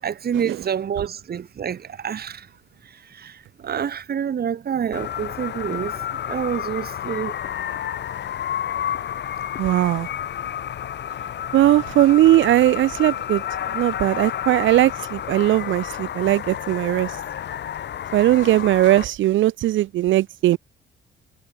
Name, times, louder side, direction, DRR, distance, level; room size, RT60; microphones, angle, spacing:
voice 1, 0.0-2.5 2.8-7.3, right 8 dB, 50° right, 2.8 m, -28 dB
sound 1, 4.9-19.0, left 10 dB, 60° left, 1.8 m, -30 dB
voice 2, 9.6-10.1 11.5-13.4 13.7-17.2 18.1-20.6, right 14 dB, 75° right, 0.7 m, -18 dB
cardioid pair, 90°, 20 cm